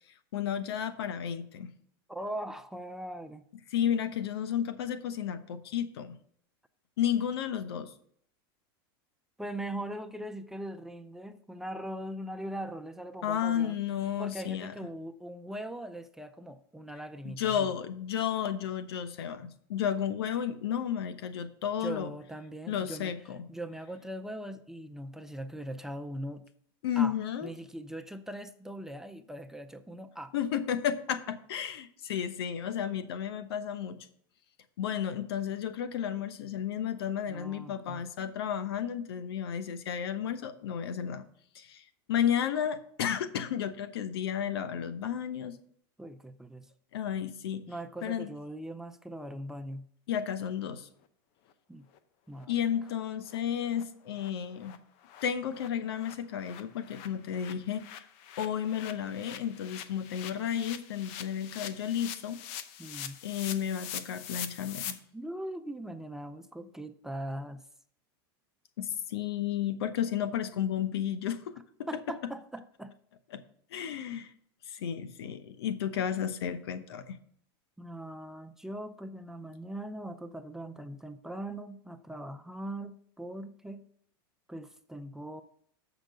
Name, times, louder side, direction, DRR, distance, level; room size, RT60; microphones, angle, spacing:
voice 1, 0.3-1.7 3.7-6.1 7.0-7.9 13.2-14.7 17.2-22.1 22.7-23.4 26.8-27.5 30.3-34.0 34.8-41.2 41.5-45.6 46.9-47.7 48.0-48.3 50.1-50.9 52.5-54.7 55.2-58.0 58.4-62.4 63.2-65.0 68.8-71.6 73.3-73.4 73.7-74.3 74.7-77.2, left 9 dB, 85° left, 12 dB, 0.9 m, -32 dB
voice 2, 2.1-3.4 9.4-13.8 14.2-17.7 21.8-23.1 23.5-26.4 27.0-27.2 27.4-30.3 37.3-38.0 46.0-46.7 47.7-49.9 51.7-51.8 52.3-52.5 62.8-63.2 65.1-67.6 71.9-72.9 77.8-83.9 84.5-85.4, right 1 dB, 5° right, 7 dB, 0.5 m, -40 dB
sound 1, 51.9-52.0 52.4-52.5 52.8-52.9 53.3-53.4 53.7-53.8 54.1-54.3 54.6-54.8 55.0-64.9, left 10 dB, 55° left, 0.8 m, -43 dB
7.3 x 5.1 x 6.7 m, 0.63 s
supercardioid pair, 130°, 13 cm